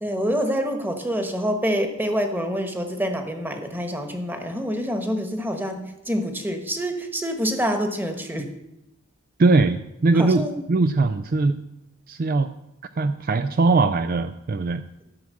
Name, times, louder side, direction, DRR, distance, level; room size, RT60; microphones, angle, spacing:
voice 1, 0.0-8.5 10.1-10.6, equal, 10° right, 5 dB, 1.3 m, -26 dB
voice 2, 9.4-11.6 12.1-12.5 13.0-14.8, right 3 dB, 45° right, 10 dB, 0.4 m, -21 dB
13.0 x 6.2 x 7.6 m, 0.88 s
head